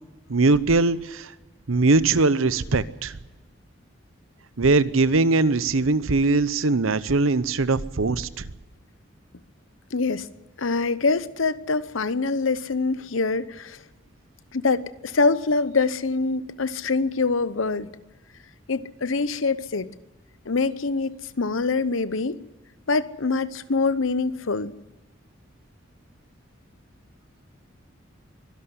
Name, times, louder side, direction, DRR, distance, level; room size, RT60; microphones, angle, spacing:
voice 1, 0.3-1.3 1.7-3.2 4.6-8.3, right 3 dB, 85° right, 16 dB, 0.8 m, -21 dB
voice 2, 9.9-10.3 10.6-13.8 14.5-17.9 18.7-19.9 20.5-22.4 22.9-24.7, left 4 dB, 80° left, 15 dB, 0.9 m, -24 dB
24.0 x 11.5 x 9.7 m, 1.2 s
head